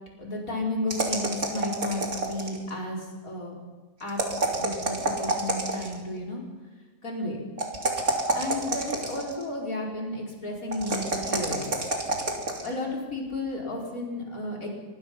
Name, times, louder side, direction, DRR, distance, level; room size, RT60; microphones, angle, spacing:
voice 1, 0.2-3.6 4.0-4.2 4.6-6.4 7.0-7.4 8.3-11.7 12.6-14.7, left 1 dB, 55° left, -2 dB, 5.5 m, -33 dB
sound 1, 0.9-2.7 4.1-6.0 7.6-9.4 10.7-12.7, right 2 dB, 60° right, 3.7 m, -28 dB
25.0 x 21.5 x 5.8 m, 1.3 s
omnidirectional pair, 1.7 m